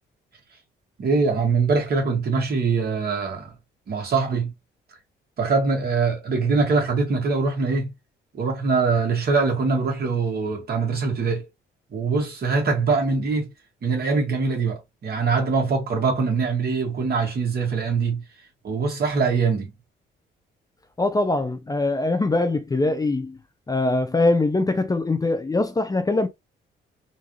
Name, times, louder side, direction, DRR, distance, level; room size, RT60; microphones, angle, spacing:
voice 1, 1.0-3.5 3.9-4.5 5.4-7.9 8.4-11.4 11.9-13.5 13.8-18.2 18.6-19.7, right 4 dB, 50° right, 1.9 m, -23 dB
voice 2, 21.0-23.4 23.7-26.3, left 2 dB, 20° left, 0.6 m, -22 dB
3.9 x 2.6 x 3.1 m
cardioid pair, 90°, 20 cm